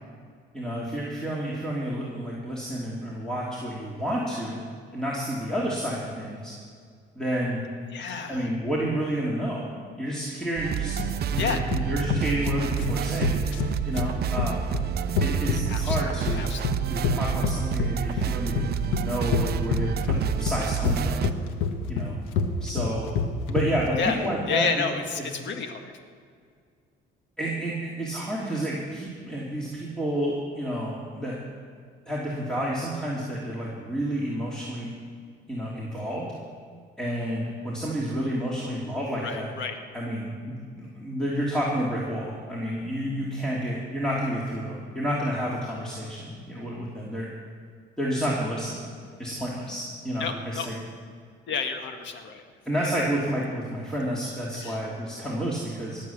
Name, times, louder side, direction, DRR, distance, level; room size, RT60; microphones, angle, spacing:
voice 1, 0.5-4.6 4.9-6.5 7.1-7.6 8.3-9.6 10.0-10.9 11.2-14.7 15.2-16.5 16.8-21.2 21.9-22.2 22.6-23.1 23.5-24.8 25.2-25.3 27.4-31.4 32.1-34.9 35.5-36.3 37.0-39.5 39.9-47.3 48.0-48.8 49.2-50.8 52.6-56.0, equal, 5° left, -6 dB, 3.0 m, -30 dB
voice 2, 7.9-8.5 11.4-11.6 15.7-16.0 16.3-17.0 24.0-24.2 24.5-25.9 39.2-39.8 50.2-50.7 51.5-52.4 54.6-54.8, left 5 dB, 60° left, 6 dB, 1.8 m, -30 dB
sound 1, 10.6-21.3, right 8 dB, 50° right, 0.6 m, -29 dB
sound 2, 11.0-24.0, left 5 dB, 90° left, 1.4 m, -27 dB
18.5 x 7.5 x 7.3 m, 2.1 s
cardioid pair, 95°, 21 cm